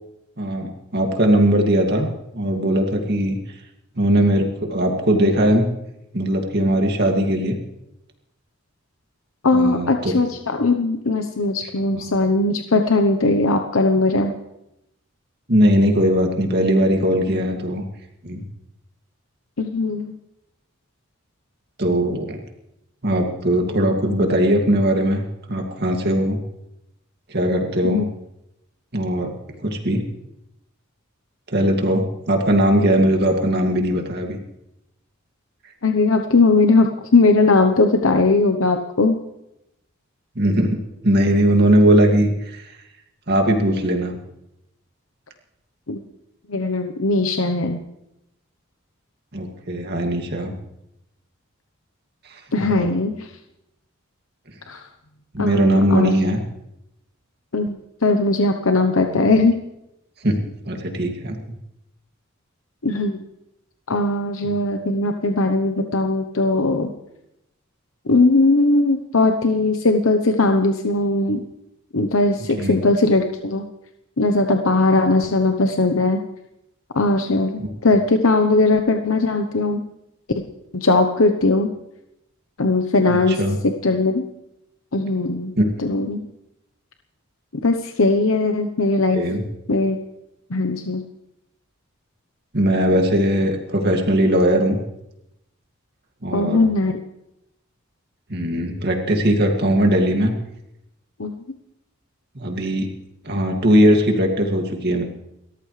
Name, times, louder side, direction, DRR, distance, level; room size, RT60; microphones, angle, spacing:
voice 1, 0.4-2.1 2.3-3.4 4.0-5.7 6.1-7.6 9.5-10.2 11.9-12.0 15.5-17.8 18.2-18.4 21.8-22.4 23.0-25.2 25.5-26.4 27.3-28.0 28.9-29.3 29.6-30.0 31.5-34.4 40.4-40.8 41.0-42.6 43.3-44.1 49.3-50.5 52.7-52.9 55.3-56.4 59.1-59.3 60.2-60.4 60.6-61.4 72.6-72.8 77.6-77.7 83.4-83.6 85.6-85.7 89.1-89.4 92.5-94.8 96.2-96.6 98.3-100.3 102.4-102.9 103.2-105.0, equal, 50° right, 2 dB, 2.4 m, -19 dB
voice 2, 9.4-14.3 19.6-20.2 27.8-28.0 35.8-39.2 45.9-46.0 46.5-47.8 52.5-53.3 54.7-54.9 55.4-56.1 57.5-59.5 62.8-63.2 63.9-66.9 68.1-71.4 71.9-73.6 74.2-76.2 76.9-79.8 80.7-81.7 82.6-84.2 84.9-85.5 85.8-86.2 87.6-89.2 89.7-90.0 90.5-91.0 96.3-97.0 101.2-101.3, left 3 dB, 85° left, 5 dB, 1.0 m, -19 dB
29.5 x 13.5 x 3.3 m, 0.86 s
head